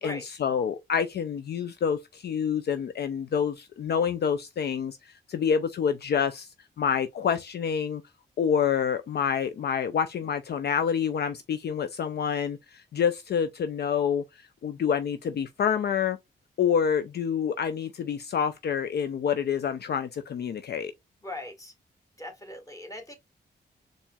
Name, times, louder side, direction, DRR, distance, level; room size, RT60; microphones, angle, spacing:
voice 1, 0.0-6.5 6.8-8.0 8.4-14.2 14.6-16.2 16.6-20.9, left 7 dB, 60° left, 0.4 m, -27 dB
voice 2, 21.2-21.7 22.2-23.2, left 1 dB, 15° left, 1.5 m, -39 dB
4.3 x 3.0 x 2.3 m
cardioid pair, 60°, 19 cm